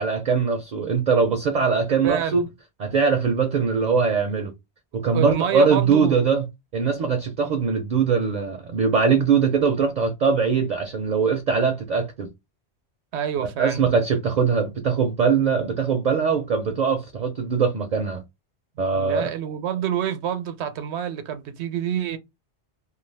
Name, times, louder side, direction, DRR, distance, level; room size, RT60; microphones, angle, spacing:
voice 1, 0.0-2.4 2.8-4.5 4.9-6.5 6.7-12.3 13.4-18.2 18.8-19.3, right 5 dB, 50° right, 0.5 m, -21 dB
voice 2, 2.0-2.4 5.1-6.2 13.1-13.8 18.9-22.2, right 9 dB, 85° right, 0.9 m, -27 dB
2.4 x 2.3 x 3.2 m
omnidirectional pair, 1.1 m